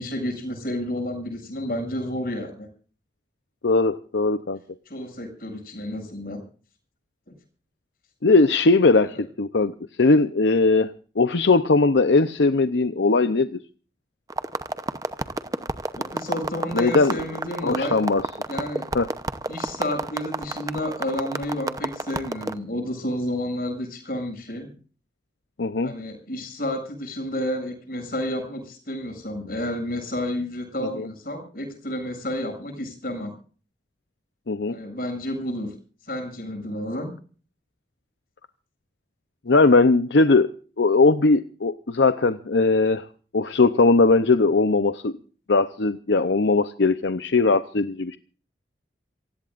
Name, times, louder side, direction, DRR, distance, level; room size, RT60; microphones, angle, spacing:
voice 1, 0.0-2.7 4.9-6.4 7.3-7.4 9.1-9.2 15.9-18.0 18.5-18.9 19.5-24.7 25.8-33.3 34.7-35.7 36.1-37.1, left 1 dB, 55° left, 7.4 m, -30 dB
voice 2, 3.6-4.6 8.2-10.9 11.2-13.6 16.7-17.2 17.6-18.2 18.9-19.1 25.6-25.9 31.0-31.1 34.5-34.8 39.5-40.5 40.8-43.1 43.3-45.1 45.5-48.2, left 3 dB, 85° left, 0.7 m, -19 dB
sound 1, 14.3-22.6, right 2 dB, 20° right, 0.8 m, -30 dB
28.0 x 16.0 x 2.5 m
head